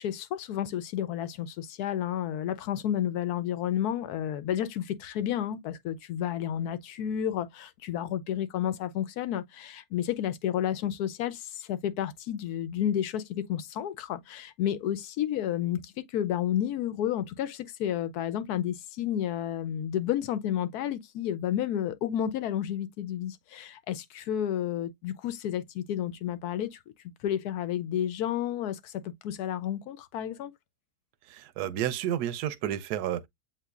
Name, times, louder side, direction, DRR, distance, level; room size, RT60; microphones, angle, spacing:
voice 1, 0.0-26.8 27.2-30.5, left 10 dB, 80° left, 1.1 m, -31 dB
voice 2, 31.3-33.3, right 11 dB, 85° right, 1.1 m, -31 dB
7.4 x 3.1 x 2.3 m
omnidirectional pair, 1.7 m